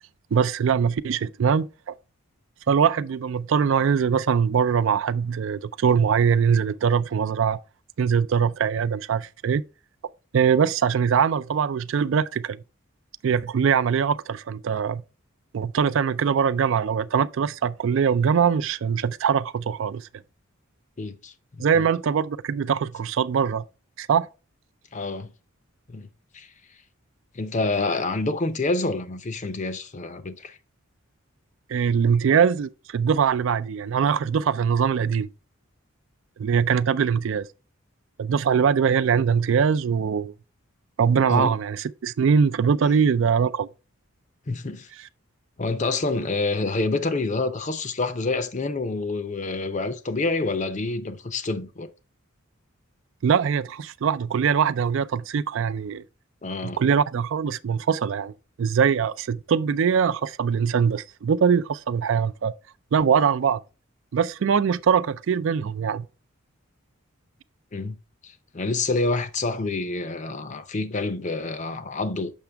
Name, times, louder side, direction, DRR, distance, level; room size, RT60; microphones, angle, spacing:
voice 1, 0.3-1.9 2.7-7.6 8.0-9.6 10.3-12.6 13.2-15.0 15.5-20.1 21.6-23.6 24.0-24.3 31.7-35.3 36.4-37.5 38.2-40.3 41.0-43.7 53.2-56.0 56.6-62.5 62.9-63.6 64.1-66.1, right 7 dB, 65° right, 0.3 m, -22 dB
voice 2, 21.0-21.3 21.7-21.9 24.9-25.3 25.9-26.1 26.3-26.5 27.3-30.6 41.3-41.6 44.5-44.9 45.6-51.9 56.4-56.8 67.7-68.0 68.2-72.3, left 3 dB, 35° left, 0.6 m, -27 dB
7.2 x 5.8 x 3.3 m
head